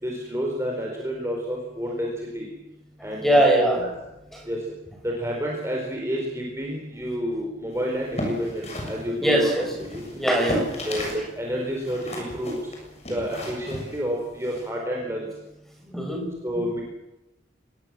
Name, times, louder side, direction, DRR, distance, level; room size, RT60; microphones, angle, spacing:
voice 1, 0.0-2.1 2.3-2.5 3.0-3.4 3.8-3.9 4.5-4.6 5.0-9.5 9.8-10.0 10.9-12.5 13.1-15.3 16.4-16.8, equal, 15° right, -1 dB, 4.4 m, -29 dB
voice 2, 3.0-3.8 4.3-4.4 9.2-9.7 10.1-10.7 10.9-11.1 15.9-16.3, right 1 dB, ahead, 1 dB, 6.1 m, -21 dB
sound 1, 7.9-11.3 11.5-14.7, equal, 35° left, 7.2 m, -34 dB
25.0 x 21.0 x 7.6 m, 0.93 s
head